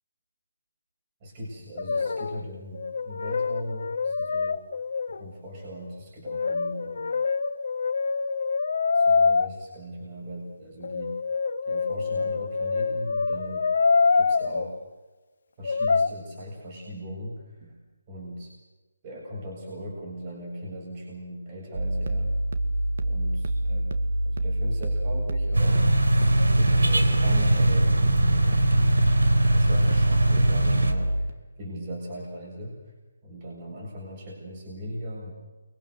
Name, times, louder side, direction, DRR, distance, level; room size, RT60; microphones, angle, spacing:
voice 1, 1.2-4.6 5.1-7.2 8.9-11.1 11.7-13.7 14.2-14.8 15.6-17.8 18.1-18.5 19.0-22.4 23.0-23.8 24.2-25.9 26.4-29.0 29.5-32.8 33.2-35.3, equal, 30° right, -2 dB, 7.6 m, -38 dB
Brass instrument, 1.8-2.5 2.7-5.3 6.3-9.5 10.8-14.7 15.6-16.1, left 4 dB, 55° left, 1.1 m, -25 dB
sound 1, 21.7-31.3, right 1 dB, 50° right, 2.2 m, -26 dB
sound 2, 25.5-30.9, right 1 dB, 75° right, 3.9 m, -21 dB
30.0 x 24.5 x 6.8 m, 1.2 s
figure-of-eight pair, 150°, 0 cm